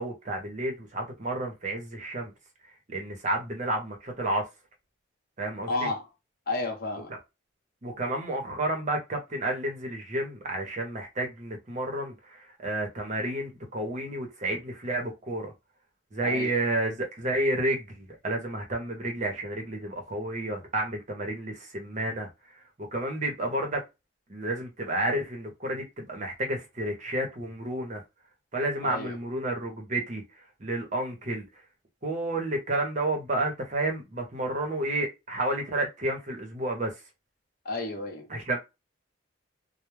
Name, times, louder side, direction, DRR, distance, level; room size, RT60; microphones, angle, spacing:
voice 1, 0.0-2.3 2.9-4.4 5.4-5.9 7.1-7.2 7.8-15.5 16.1-22.3 22.8-23.8 24.3-28.0 28.5-30.2 30.6-31.5 32.0-36.9 38.3-38.6, right 1 dB, 35° right, 0.7 m, -31 dB
voice 2, 5.6-6.0 6.5-7.1 16.2-16.5 28.8-29.2 37.6-38.3, left 2 dB, 50° left, 0.8 m, -31 dB
2.2 x 2.0 x 3.1 m
head